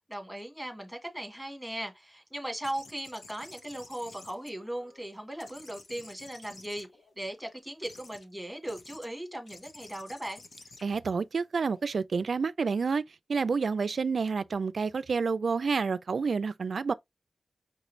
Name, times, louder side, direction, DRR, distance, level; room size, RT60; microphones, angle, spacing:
voice 1, 0.1-6.9 7.2-10.4, right 1 dB, ahead, 1.3 m, -38 dB
sound 1, 2.6-5.0 5.4-7.3 7.8-8.3 8.6-9.1 9.5-12.0, left 3 dB, 75° left, 0.9 m, -52 dB
voice 2, 10.8-16.9, right 5 dB, 70° right, 0.3 m, -29 dB
5.7 x 2.6 x 3.0 m
wide cardioid pair, 115°, 0 cm